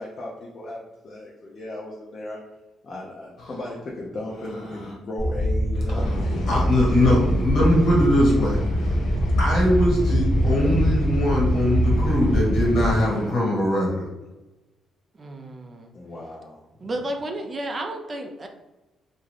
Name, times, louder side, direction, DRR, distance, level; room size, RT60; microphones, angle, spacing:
voice 1, 0.0-2.4 2.8-6.6 6.8-7.3 7.6-7.9 15.9-16.6, left 1 dB, 45° left, -4 dB, 0.6 m, -36 dB
sound 1, 5.2-13.0, equal, 5° left, 0.9 m, -23 dB
sound 2, 6.0-13.3, left 1 dB, 85° left, 0.7 m, -35 dB
voice 2, 6.5-8.6 9.4-14.1, left 1 dB, 70° left, -3 dB, 1.4 m, -21 dB
voice 3, 15.2-15.9 16.8-18.5, right 1 dB, 35° right, 3 dB, 0.4 m, -32 dB
2.5 x 2.3 x 3.3 m, 1.1 s
cardioid pair, 90°, 0 cm